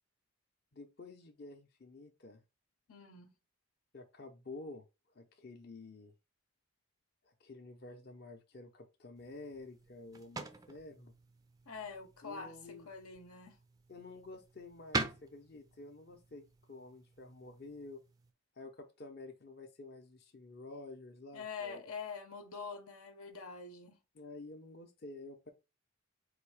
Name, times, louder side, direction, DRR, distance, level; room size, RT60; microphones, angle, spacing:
voice 1, 0.7-2.4 3.9-4.8 5.1-6.1 7.2-11.1 12.2-12.9 13.9-18.0 18.6-21.8 24.1-25.5, left 2 dB, 45° left, 0.6 m, -50 dB
voice 2, 2.9-3.3 11.7-13.6 21.3-24.0, left 5 dB, 80° left, 0.9 m, -45 dB
sound 1, 9.1-18.3, right 3 dB, 15° right, 0.4 m, -45 dB
4.0 x 2.7 x 4.8 m
head